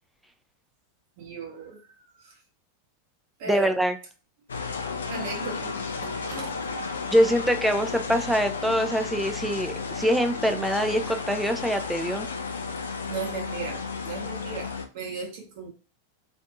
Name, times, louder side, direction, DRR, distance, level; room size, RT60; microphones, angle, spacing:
voice 1, 1.2-2.4 3.4-3.7 5.1-5.7 6.0-6.6 13.1-15.7, right 5 dB, 50° right, 0 dB, 0.9 m, -36 dB
voice 2, 3.5-3.9 7.1-12.3, equal, 5° right, 6 dB, 0.3 m, -24 dB
sound 1, 4.5-14.9, left 4 dB, 70° left, 0.4 m, -33 dB
2.5 x 2.5 x 2.3 m, 0.35 s
figure-of-eight pair, 90°, 0 cm